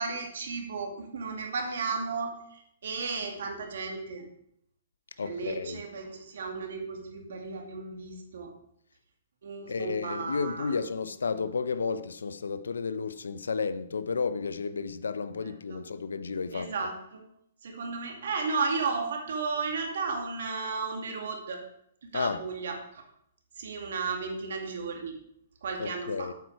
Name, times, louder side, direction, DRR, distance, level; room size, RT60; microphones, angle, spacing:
voice 1, 0.0-4.3 5.2-8.5 9.4-10.8 15.7-15.8 16.5-17.2 17.6-21.6 22.0-23.0 23.6-25.2 25.6-26.3, right 4 dB, 70° right, 2.3 m, -34 dB
voice 2, 5.2-5.8 9.7-16.7 22.1-22.4 25.8-26.3, left 5 dB, 85° left, 0.7 m, -32 dB
8.5 x 8.2 x 4.6 m
hypercardioid pair, 135°, 0 cm